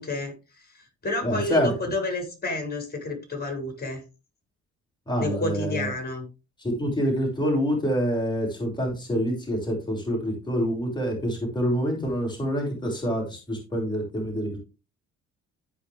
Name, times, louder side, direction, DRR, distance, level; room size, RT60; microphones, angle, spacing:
voice 1, 0.0-4.0 5.2-6.3, left 2 dB, 30° left, 3 dB, 6.3 m, -30 dB
voice 2, 1.2-1.7 5.1-5.9 6.6-14.6, equal, 15° left, -1 dB, 6.3 m, -26 dB
16.0 x 5.5 x 3.5 m, 0.29 s
cardioid pair, 90°, 30 cm